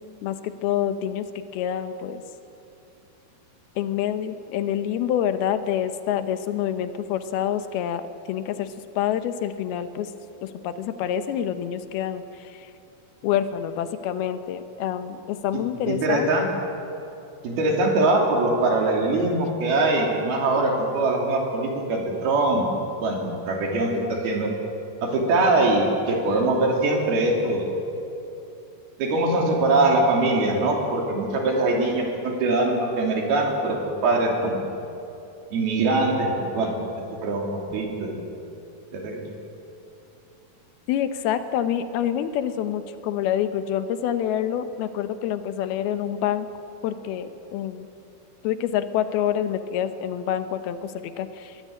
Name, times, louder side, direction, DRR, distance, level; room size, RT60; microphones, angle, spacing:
voice 1, 0.2-2.2 3.8-10.1 10.4-12.7 13.2-16.3 40.9-46.5 46.8-47.9 48.4-51.6, left 10 dB, 85° left, 10 dB, 2.9 m, -27 dB
voice 2, 15.9-16.5 17.4-24.5 25.0-27.8 29.0-33.8 34.0-34.6 35.5-36.8 37.2-38.2 38.9-39.3, right 2 dB, 80° right, 0 dB, 4.8 m, -22 dB
22.5 x 16.5 x 8.6 m, 2.8 s
omnidirectional pair, 4.4 m